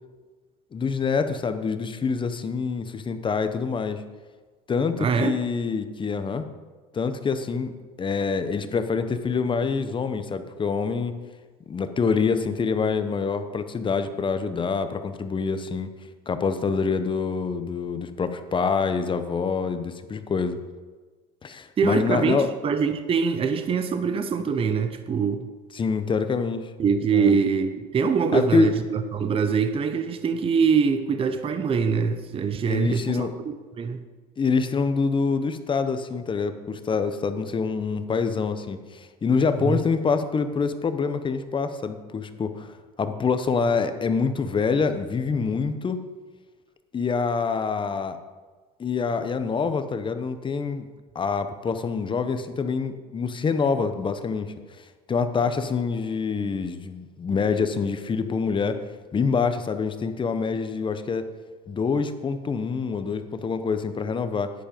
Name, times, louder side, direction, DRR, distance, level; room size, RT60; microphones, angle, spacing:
voice 1, 0.7-4.0 4.7-6.4 6.9-7.7 8.0-11.1 11.7-15.9 16.3-20.6 21.4-22.5 25.7-26.7 27.1-27.4 28.3-28.7 32.7-33.3 34.4-42.7 43.0-46.0 46.9-48.2 48.8-50.9 51.1-54.5 55.1-58.8 59.1-61.2 61.7-64.5, left 5 dB, 25° left, 9 dB, 0.9 m, -26 dB
voice 2, 5.0-5.4 21.8-25.5 26.8-34.0 39.6-39.8, right 6 dB, 30° right, 9 dB, 0.8 m, -24 dB
10.0 x 10.0 x 5.2 m, 1.4 s
supercardioid pair, 105°, 20 cm